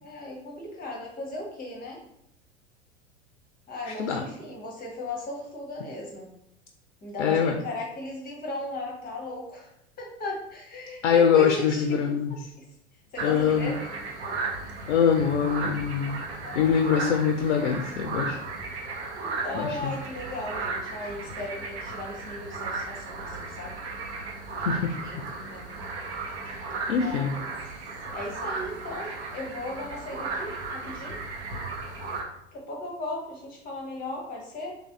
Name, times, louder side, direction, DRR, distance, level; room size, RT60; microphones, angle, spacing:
voice 1, 0.0-2.0 3.7-6.3 7.0-9.7 10.0-12.2 13.1-13.8 16.4-17.2 19.1-23.7 25.0-25.7 26.9-27.4 28.1-31.2 32.5-34.7, left 1 dB, 25° left, -1 dB, 0.8 m, -37 dB
voice 2, 3.9-4.2 7.2-7.6 11.0-12.4 13.2-13.7 14.9-16.2 16.5-18.4 19.5-19.9 24.7-24.9 26.9-27.3, left 7 dB, 75° left, 4 dB, 0.5 m, -23 dB
sound 1, 13.2-32.2, right 3 dB, 65° right, 0.9 m, -35 dB
3.3 x 2.6 x 3.4 m, 0.78 s
figure-of-eight pair, 85°, 36 cm